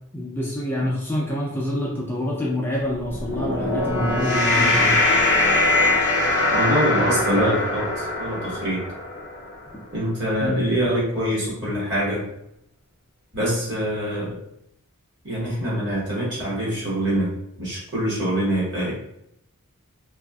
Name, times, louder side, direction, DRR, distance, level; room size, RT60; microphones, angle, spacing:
voice 1, 0.1-5.0 10.4-10.6, left 1 dB, 10° left, -4 dB, 0.4 m, -26 dB
sound 1, 3.0-9.5, left 2 dB, 55° left, 0.6 m, -22 dB
voice 2, 6.5-8.8 9.9-12.2 13.3-14.4 15.2-18.9, equal, 55° right, -6 dB, 1.2 m, -24 dB
2.7 x 2.4 x 2.3 m, 0.77 s
head